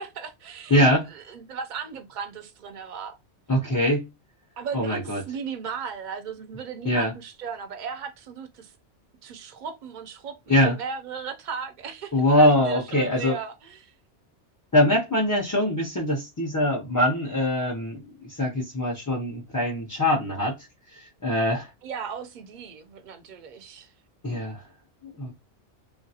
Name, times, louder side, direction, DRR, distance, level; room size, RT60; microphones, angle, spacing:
voice 1, 0.0-3.2 4.6-8.7 9.2-13.9 21.8-23.9, right 6 dB, 50° right, 0.6 m, -36 dB
voice 2, 0.7-1.1 3.5-4.1 4.7-5.2 6.8-7.1 10.5-10.8 12.1-13.4 14.7-20.5 21.2-21.7 24.2-24.6 25.0-25.3, left 1 dB, 25° left, 0.4 m, -23 dB
3.1 x 2.4 x 2.7 m
omnidirectional pair, 1.2 m